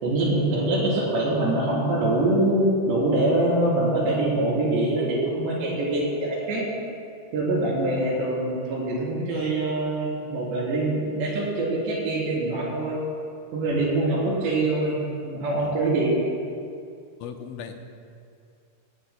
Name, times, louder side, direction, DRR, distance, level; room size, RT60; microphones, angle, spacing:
voice 1, 0.0-6.6 7.3-13.0 13.5-15.0 15.2-16.1, right 2 dB, 65° right, -5 dB, 5.9 m, -24 dB
voice 2, 17.2-17.7, left 7 dB, 85° left, 4 dB, 3.3 m, -38 dB
22.0 x 18.5 x 2.2 m, 2.4 s
omnidirectional pair, 5.5 m